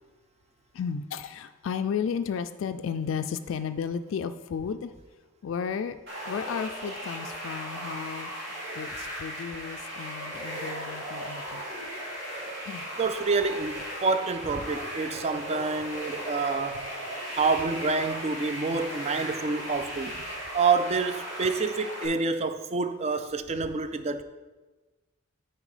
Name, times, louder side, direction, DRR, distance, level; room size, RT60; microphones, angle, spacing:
voice 1, 0.7-4.9 5.4-6.0 6.2-8.3 8.8-11.6 12.7-12.9, left 6 dB, 75° left, 0.3 m, -33 dB
sound 1, 6.1-22.1, equal, 60° right, 2.6 m, -37 dB
voice 2, 13.0-16.9 17.4-20.2 20.5-24.2, right 4 dB, 30° right, 0.4 m, -27 dB
8.8 x 4.4 x 4.9 m
head